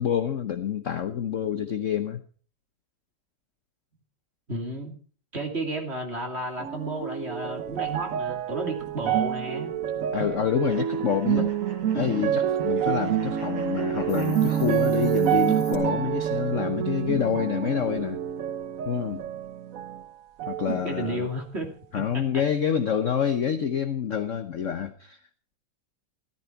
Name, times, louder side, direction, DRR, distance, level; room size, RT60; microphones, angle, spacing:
voice 1, 0.0-2.2 10.1-11.5 11.9-18.2 18.8-19.2 20.5-21.3 21.9-25.2, left 8 dB, 55° left, 8 dB, 0.8 m, -27 dB
voice 2, 4.5-4.9 5.3-9.7 11.9-12.5 20.6-21.7 22.1-22.2, right 1 dB, 30° right, 3 dB, 2.9 m, -32 dB
sound 1, 6.6-20.1 20.4-21.3 22.0-22.1, right 9 dB, 75° right, 0.7 m, -28 dB
sound 2, 10.7-15.3, right 1 dB, 60° right, 5.4 m, -49 dB
Hiss, 13.9-15.8, left 5 dB, 80° left, 4.0 m, -45 dB
14.5 x 13.5 x 4.5 m, 0.42 s
omnidirectional pair, 2.4 m